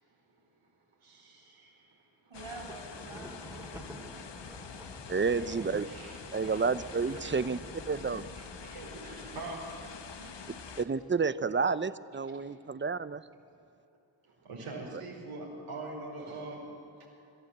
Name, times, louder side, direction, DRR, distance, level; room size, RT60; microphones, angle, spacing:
voice 1, 1.0-2.0 5.2-6.2 6.5-6.6 7.2-7.3 8.4-9.9 12.4-12.5 14.3-16.7 17.0-17.1, right 2 dB, 90° right, -2 dB, 5.1 m, -43 dB
sound 1, 2.3-10.8, left 6 dB, 55° left, 1.3 m, -46 dB
voice 2, 2.3-4.0 9.8-9.9 10.2-10.5, right 3 dB, 70° right, 0 dB, 6.5 m, -47 dB
Thunder, 2.4-9.6, equal, 5° right, 2.7 m, -50 dB
voice 3, 5.1-5.9 6.3-7.6 7.9-8.3 10.8-13.2 14.9-15.0, right 5 dB, 25° right, 15 dB, 0.8 m, -30 dB
26.5 x 13.0 x 8.1 m, 2.8 s
cardioid pair, 50°, 50 cm